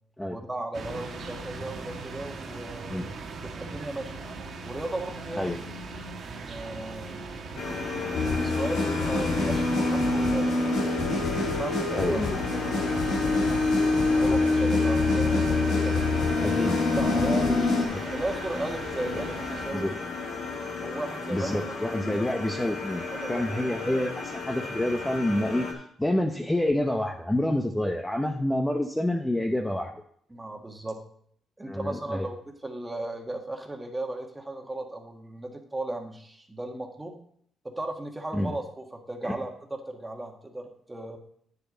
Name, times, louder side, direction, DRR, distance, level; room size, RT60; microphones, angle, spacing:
voice 1, 0.3-3.0 3.4-4.1 4.6-5.6 6.2-7.3 8.3-10.6 11.4-12.2 12.5-13.6 14.1-16.4 16.9-20.0 20.8-22.1 23.1-23.8 30.3-31.0 31.6-37.2 37.6-41.2, right 2 dB, 15° right, 3 dB, 1.7 m, -36 dB
sound 1, 0.7-19.7, right 3 dB, 60° right, 1.3 m, -40 dB
sound 2, 7.6-25.7, left 3 dB, 65° left, 1.8 m, -35 dB
sound 3, 8.1-17.8, left 3 dB, 85° left, 1.7 m, -25 dB
voice 2, 16.4-16.7 19.7-19.9 21.3-23.0 23.3-29.9 31.7-32.3 38.3-38.5 39.2-39.4, left 1 dB, 10° left, 3 dB, 0.8 m, -28 dB
9.5 x 6.8 x 3.9 m, 0.64 s
cardioid pair, 90°, 0 cm